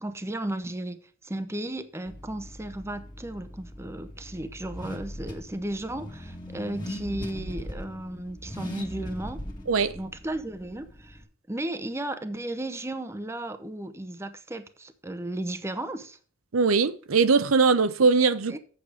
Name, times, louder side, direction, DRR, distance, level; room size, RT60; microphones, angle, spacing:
voice 1, 0.0-9.4 9.9-11.2 11.5-16.2 17.8-17.9 18.5-18.6, right 1 dB, 15° right, 0.8 m, -34 dB
Car / Accelerating revving vroom, 2.0-11.2, left 1 dB, 20° left, 1.6 m, -40 dB
voice 2, 16.5-18.6, right 4 dB, 80° right, 0.7 m, -21 dB
8.5 x 6.6 x 4.8 m
head